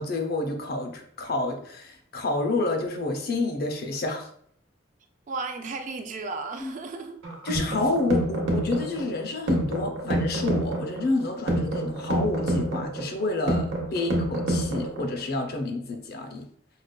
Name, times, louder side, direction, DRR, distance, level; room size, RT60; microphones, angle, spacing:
voice 1, 0.0-4.3 6.6-6.7 7.4-16.5, left 2 dB, 50° left, 4 dB, 0.5 m, -29 dB
voice 2, 5.3-7.2 13.9-14.1, right 3 dB, 40° right, 6 dB, 0.3 m, -34 dB
sound 1, 7.2-15.2, right 1 dB, 65° right, 0.8 m, -28 dB
4.8 x 2.3 x 2.2 m, 0.63 s
head